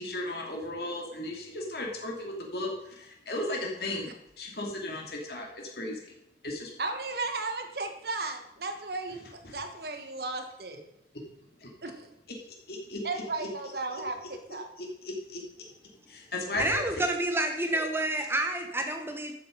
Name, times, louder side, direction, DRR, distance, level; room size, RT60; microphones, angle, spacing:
voice 1, 0.0-6.0 6.4-7.0 9.5-9.6 11.6-11.7 12.7-13.5 13.9-14.0 14.8-15.4 16.1-17.0, left 1 dB, 60° left, 0 dB, 2.8 m, -36 dB
voice 2, 6.8-10.8 11.8-12.1 13.0-14.7, right 3 dB, 60° right, 6 dB, 1.4 m, -35 dB
voice 3, 16.6-19.3, right 1 dB, 15° right, 5 dB, 1.1 m, -29 dB
12.0 x 7.9 x 5.4 m, 0.81 s
head